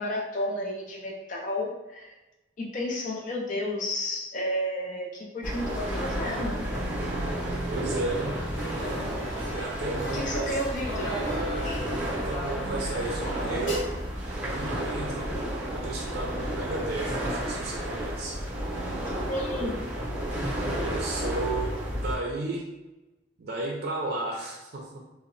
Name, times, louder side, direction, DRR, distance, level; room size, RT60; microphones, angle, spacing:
voice 1, 0.0-2.1 2.6-6.5 10.1-11.2 19.3-19.8, left 1 dB, 45° left, -1 dB, 0.5 m, -31 dB
sound 1, 5.4-22.2, right 1 dB, 10° right, 0.7 m, -32 dB
voice 2, 7.7-8.4 9.5-10.6 12.0-13.9 14.4-15.3 15.7-18.4 20.8-22.7 23.4-25.0, right 2 dB, 55° right, -2 dB, 0.4 m, -33 dB
sound 2, 8.1-13.8, equal, 90° left, 0.8 m, -36 dB
2.8 x 2.0 x 2.5 m, 1.0 s
head